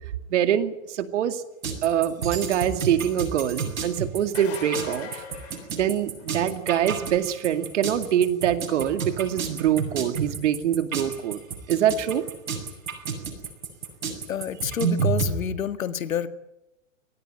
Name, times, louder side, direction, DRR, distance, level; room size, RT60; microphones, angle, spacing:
voice 1, 0.3-1.4 1.8-5.2 5.7-11.4 11.7-12.3, right 10 dB, 60° right, 9 dB, 2.4 m, -24 dB
sound 1, 1.6-15.3, right 6 dB, 90° right, 7.7 m, -30 dB
sound 2, 4.2-6.4 11.9-12.0 13.9-14.0, left 6 dB, 55° left, 7.7 m, -40 dB
voice 2, 14.3-16.3, left 8 dB, 85° left, 10 dB, 2.0 m, -28 dB
25.0 x 19.0 x 9.0 m, 0.91 s
hypercardioid pair, 145°, 39 cm